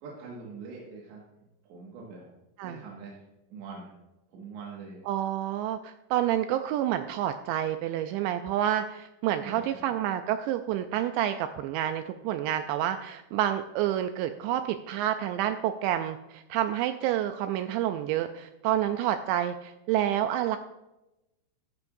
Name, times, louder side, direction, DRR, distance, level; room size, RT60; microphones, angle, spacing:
voice 1, 0.0-2.3 2.6-3.2 3.5-3.9 4.3-5.0 9.4-9.9, right 4 dB, 70° right, -4 dB, 3.8 m, -44 dB
voice 2, 5.1-20.6, right 11 dB, 90° right, 8 dB, 2.5 m, -29 dB
15.0 x 14.5 x 2.6 m, 0.96 s
omnidirectional pair, 5.6 m